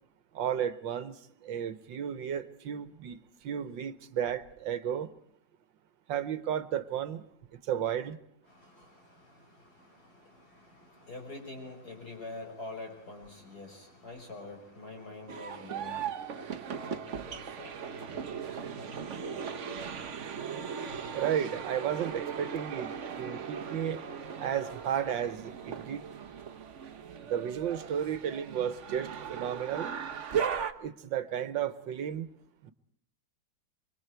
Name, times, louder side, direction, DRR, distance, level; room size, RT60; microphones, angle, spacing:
voice 1, 0.3-5.1 6.1-7.2 7.5-8.2 21.1-24.0 24.4-26.0 27.2-29.9 30.8-32.3 32.6-32.7, right 9 dB, 80° right, 1.7 m, -33 dB
voice 2, 8.5-19.8, left 2 dB, 55° left, 6.3 m, -47 dB
sound 1, 15.3-30.7, right 7 dB, 45° right, 1.1 m, -38 dB
26.5 x 23.5 x 4.6 m
omnidirectional pair, 2.0 m